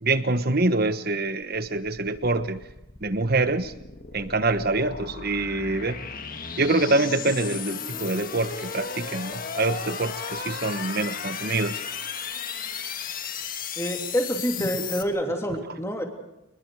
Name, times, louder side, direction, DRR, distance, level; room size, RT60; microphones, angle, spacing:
voice 1, 0.0-2.6 3.0-3.8 4.1-6.0 6.6-11.8, right 2 dB, 45° right, 11 dB, 1.2 m, -25 dB
sound 1, 1.4-15.0, left 6 dB, 40° left, 1.7 m, -35 dB
voice 2, 13.8-16.0, equal, 15° left, 3 dB, 3.1 m, -27 dB
29.5 x 21.0 x 4.9 m, 0.92 s
head